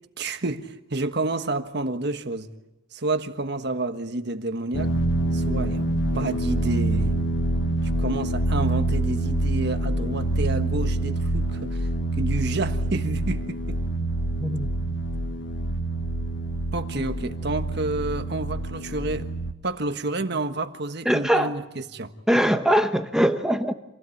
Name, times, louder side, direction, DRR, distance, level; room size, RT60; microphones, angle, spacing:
voice 1, 0.2-2.5 2.9-4.9 5.3-5.9 6.1-7.2 7.8-11.9 12.2-13.8 16.7-19.3 19.6-22.1, right 2 dB, 55° right, 1.4 m, -29 dB
sound 1, 4.7-19.5, right 2 dB, 65° left, 1.3 m, -26 dB
voice 2, 21.0-21.6 22.3-23.7, equal, 5° right, 1.0 m, -22 dB
27.0 x 16.5 x 8.6 m
head